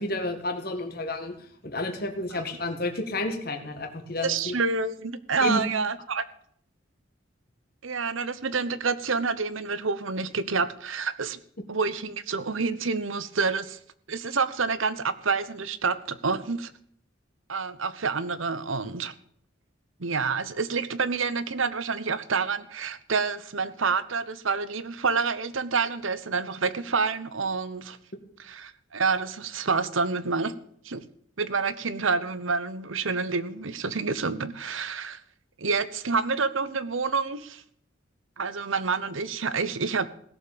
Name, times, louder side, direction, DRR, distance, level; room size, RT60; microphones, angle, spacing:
voice 1, 0.0-1.4 1.6-4.6 5.4-5.6, left 2 dB, 50° left, 5 dB, 1.9 m, -31 dB
voice 2, 4.2-6.2 7.8-11.4 11.7-13.8 14.1-16.7 17.5-19.1 20.0-28.0 28.4-30.5 30.8-31.0 31.4-35.2 35.6-37.6 38.4-40.1, right 4 dB, 80° right, 14 dB, 1.1 m, -28 dB
17.0 x 7.4 x 8.8 m, 0.64 s
head